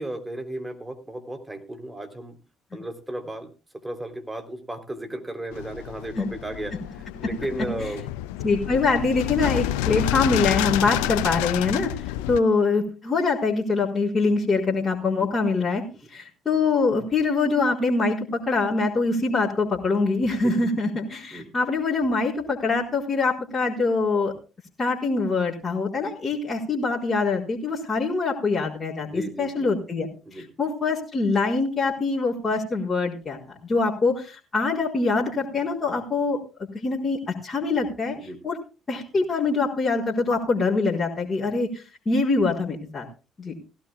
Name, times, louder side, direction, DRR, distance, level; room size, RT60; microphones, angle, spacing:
voice 1, 0.0-2.4 2.7-3.5 3.8-8.0 9.9-10.0 11.0-11.1 11.6-11.9 20.4-20.5 21.3-21.5 29.0-29.7 30.2-30.5 38.1-38.4, right 1 dB, 10° right, 5 dB, 3.4 m, -35 dB
sound 1, 5.5-12.4, left 15 dB, 70° left, 0.5 m, -29 dB
voice 2, 8.4-11.9 12.3-15.8 16.1-24.3 24.8-36.4 36.7-38.2 38.4-38.6 38.9-43.1 43.4-43.6, left 3 dB, 30° left, -5 dB, 4.3 m, -24 dB
17.5 x 17.0 x 2.3 m, 0.32 s
figure-of-eight pair, 50°, 0 cm